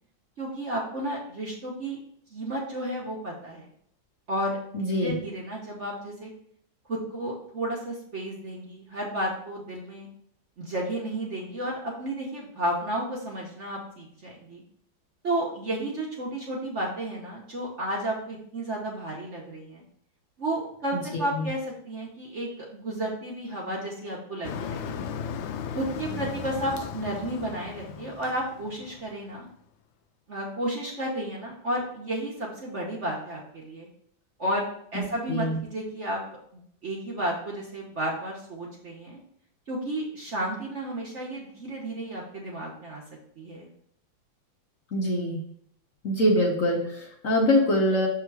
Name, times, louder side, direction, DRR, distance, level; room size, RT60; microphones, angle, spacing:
voice 1, 0.4-2.0 2.3-3.7 4.3-4.6 4.9-6.3 6.9-10.1 10.6-14.6 15.2-19.8 20.4-25.1 25.7-29.4 30.3-33.9 34.4-34.6 34.9-36.2 36.5-39.2 39.7-43.0 43.4-43.7, right 1 dB, 45° right, -2 dB, 1.0 m, -32 dB
voice 2, 4.7-5.1 20.9-21.5 34.9-35.0 35.3-35.6 44.9-45.4 46.0-48.1, left 1 dB, 50° left, -1 dB, 1.1 m, -24 dB
Motor vehicle (road), 24.4-29.4, left 7 dB, 80° left, 1.3 m, -36 dB
6.5 x 3.7 x 4.6 m, 0.68 s
omnidirectional pair, 2.1 m